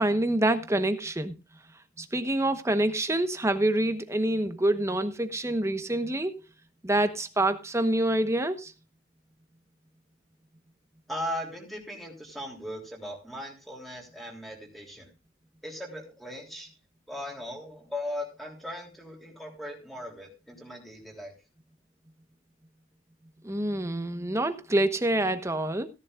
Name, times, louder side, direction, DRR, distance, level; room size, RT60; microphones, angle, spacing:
voice 1, 0.0-1.3 2.0-6.4 6.8-8.7 23.4-25.9, right 1 dB, 15° right, 1.1 m, -26 dB
voice 2, 11.1-15.1 15.6-16.7 17.1-21.4, left 1 dB, ahead, 3.3 m, -38 dB
16.5 x 11.0 x 2.4 m
head